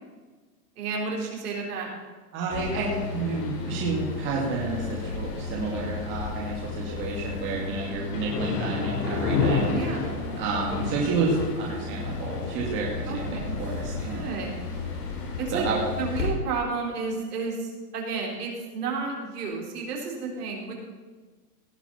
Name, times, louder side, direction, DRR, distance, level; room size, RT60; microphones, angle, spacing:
voice 1, 0.8-1.9 9.7-10.0 13.1-13.6 14.1-14.6 15.4-15.7 16.0-20.7, right 4 dB, 65° right, -1 dB, 4.3 m, -31 dB
voice 2, 2.3-9.8 10.3-14.3 15.5-15.8, right 3 dB, 25° right, -4 dB, 2.2 m, -30 dB
sound 1, 2.5-16.3, left 4 dB, 70° left, 3.9 m, -31 dB
18.0 x 6.9 x 5.7 m, 1.4 s
hypercardioid pair, 165°, 49 cm